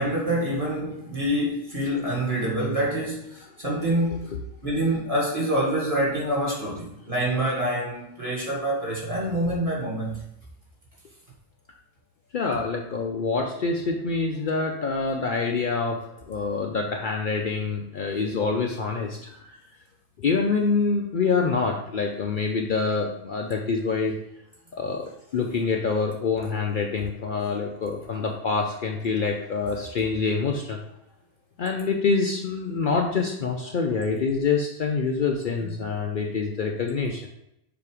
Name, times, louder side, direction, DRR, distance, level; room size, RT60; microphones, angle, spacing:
voice 1, 0.0-4.2 4.6-10.2 35.6-35.7, right 1 dB, 30° right, -5 dB, 1.9 m, -26 dB
voice 2, 12.3-19.2 20.2-24.2 24.7-30.8 31.6-37.2, left 4 dB, 55° left, 1 dB, 0.7 m, -26 dB
7.0 x 2.8 x 4.8 m, 0.81 s
omnidirectional pair, 1.1 m